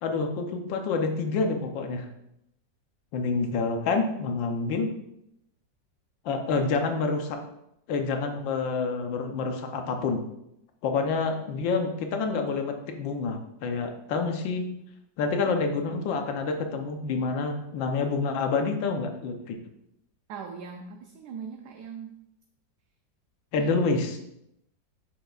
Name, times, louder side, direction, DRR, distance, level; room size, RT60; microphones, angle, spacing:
voice 1, 0.0-2.1 3.1-4.9 6.2-7.4 7.9-10.2 10.8-14.7 15.2-19.6 23.5-24.2, left 4 dB, 80° left, 5 dB, 1.5 m, -28 dB
voice 2, 20.3-22.2 23.6-24.0, right 6 dB, 70° right, 3 dB, 1.1 m, -40 dB
7.9 x 6.1 x 2.4 m, 0.81 s
omnidirectional pair, 2.0 m